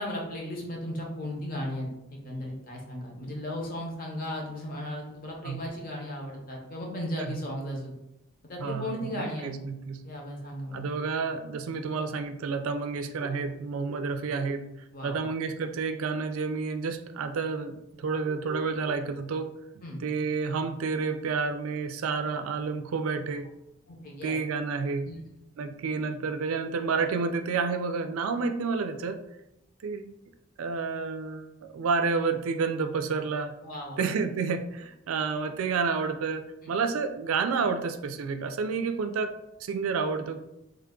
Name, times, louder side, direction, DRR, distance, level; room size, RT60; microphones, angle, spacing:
voice 1, 0.0-7.9 8.5-9.5 10.0-10.9 14.9-15.2 19.8-20.0 23.9-24.4 25.0-25.2 33.6-34.1, left 1 dB, 45° left, 0 dB, 0.8 m, -36 dB
voice 2, 8.6-10.1 10.7-14.7 15.0-19.5 20.0-23.5 24.2-25.2 25.6-29.2 29.8-30.1 30.6-33.6 34.0-39.3 39.6-40.4, right 4 dB, 85° right, 8 dB, 0.4 m, -30 dB
3.2 x 2.3 x 3.6 m, 0.89 s
head